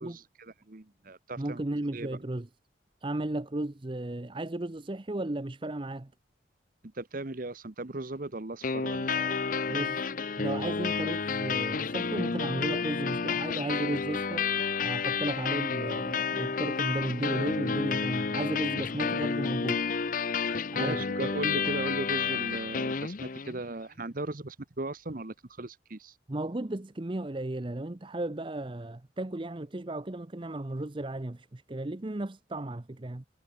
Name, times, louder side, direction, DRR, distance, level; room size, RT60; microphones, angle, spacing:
voice 1, 0.0-1.6 1.9-2.2 6.9-9.9 20.8-26.2, right 2 dB, 45° right, 1.0 m, -37 dB
voice 2, 1.4-2.5 3.0-6.1 9.7-10.0 10.4-14.5 14.8-19.9 20.7-21.3 26.3-33.2, right 1 dB, 25° right, 0.7 m, -34 dB
sound 1, 8.6-23.6, left 5 dB, 45° left, 0.6 m, -30 dB
head